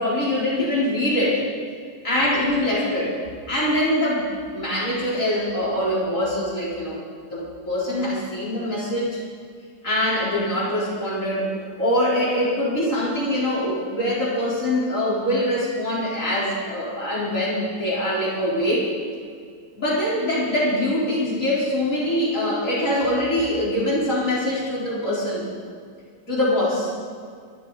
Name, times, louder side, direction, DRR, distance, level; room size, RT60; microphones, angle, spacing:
voice 1, 0.0-1.4 2.0-3.2 3.5-7.0 7.3-9.2 9.8-18.9 19.7-25.5 26.3-26.9, left 1 dB, 55° left, -6 dB, 4.6 m, -23 dB
23.5 x 13.0 x 4.1 m, 2.2 s
omnidirectional pair, 1.6 m